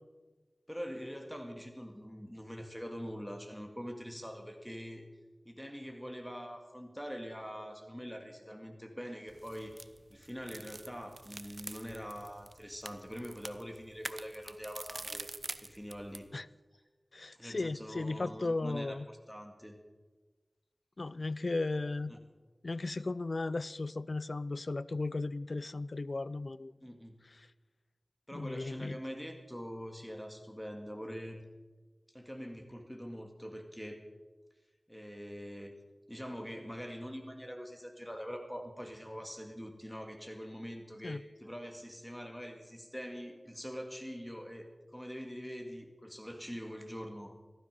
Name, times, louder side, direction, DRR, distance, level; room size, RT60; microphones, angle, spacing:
voice 1, 0.7-5.1 5.4-15.3 15.6-16.3 16.7-16.8 17.3-19.8 22.1-22.2 26.8-27.2 28.3-31.4 32.1-34.0 34.9-35.7 36.1-47.4, equal, 5° left, 4 dB, 2.0 m, -44 dB
sound 1, 9.3-16.3, right 2 dB, 55° right, 0.6 m, -46 dB
voice 2, 17.1-19.1 21.0-22.1 22.6-26.7 28.3-29.0 41.0-41.2, left 3 dB, 60° left, 18 dB, 0.4 m, -35 dB
14.5 x 12.5 x 5.4 m, 1.3 s
wide cardioid pair, 55°, 0 cm